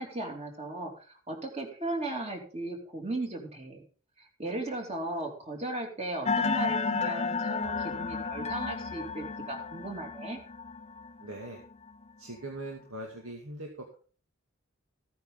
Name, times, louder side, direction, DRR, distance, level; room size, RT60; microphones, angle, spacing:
voice 1, 0.0-3.8 4.2-10.4, right 2 dB, 30° right, 2 dB, 3.0 m, -36 dB
sound 1, 6.3-11.9, left 4 dB, 30° left, 0.5 m, -32 dB
voice 2, 11.2-11.6 12.2-14.0, right 1 dB, 90° right, 0 dB, 2.3 m, -41 dB
15.5 x 9.5 x 3.9 m, 0.40 s
head